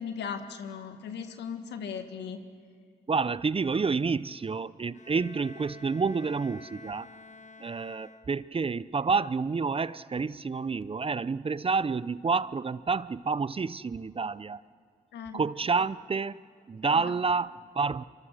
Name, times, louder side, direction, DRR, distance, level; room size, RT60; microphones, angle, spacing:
voice 1, 0.0-2.4 15.1-15.4 16.8-17.1, left 6 dB, 80° left, 7 dB, 1.6 m, -38 dB
voice 2, 3.1-7.1 7.6-14.6 15.3-16.4 16.7-18.0, right 4 dB, 35° right, 18 dB, 0.6 m, -29 dB
Bowed string instrument, 4.9-8.7, left 3 dB, 45° left, 1.5 m, -50 dB
24.5 x 24.0 x 6.6 m, 2.1 s
supercardioid pair, 50°, 17 cm